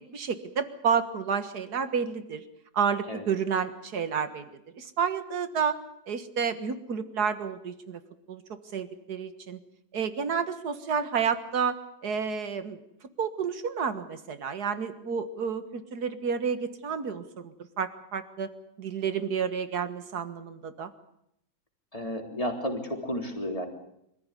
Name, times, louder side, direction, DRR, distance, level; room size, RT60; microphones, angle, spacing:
voice 1, 0.0-2.4 2.7-4.5 4.7-5.8 6.1-8.0 8.3-9.6 9.9-11.8 12.0-12.8 13.2-18.5 18.8-20.9, right 6 dB, 80° right, 11 dB, 2.1 m, -30 dB
voice 2, 21.9-23.7, equal, 20° left, 3 dB, 3.6 m, -32 dB
25.5 x 15.0 x 9.9 m, 0.78 s
omnidirectional pair, 1.7 m